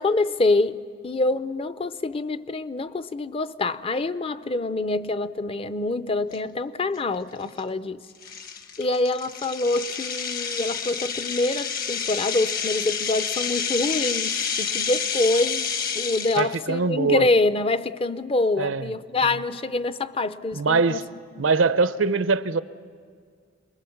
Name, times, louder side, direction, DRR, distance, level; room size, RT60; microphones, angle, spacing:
voice 1, 0.0-8.0 8.8-21.0 21.4-21.5, left 2 dB, 30° left, 0.6 m, -26 dB
sound 1, 6.3-6.4 7.0-7.1 7.6-7.7 8.2-16.5, left 6 dB, 50° left, 1.3 m, -29 dB
voice 2, 16.4-17.3 18.6-18.9 20.5-21.0 21.4-22.6, right 4 dB, 80° right, 0.7 m, -22 dB
27.5 x 21.0 x 7.1 m
head